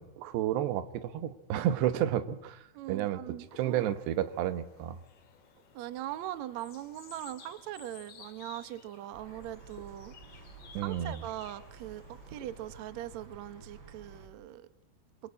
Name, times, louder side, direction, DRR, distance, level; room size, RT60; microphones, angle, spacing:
voice 1, 0.0-3.2 3.5-5.0 10.7-11.2, right 11 dB, 85° right, 13 dB, 3.3 m, -31 dB
voice 2, 2.7-3.9 5.7-10.4 10.8-14.7, right 13 dB, 70° right, 13 dB, 1.8 m, -41 dB
sound 1, 3.5-12.8, left 6 dB, 45° left, 2.8 m, -56 dB
sound 2, 9.1-14.3, right 4 dB, 30° right, 4.2 m, -52 dB
26.5 x 24.0 x 8.5 m, 0.85 s
omnidirectional pair, 4.7 m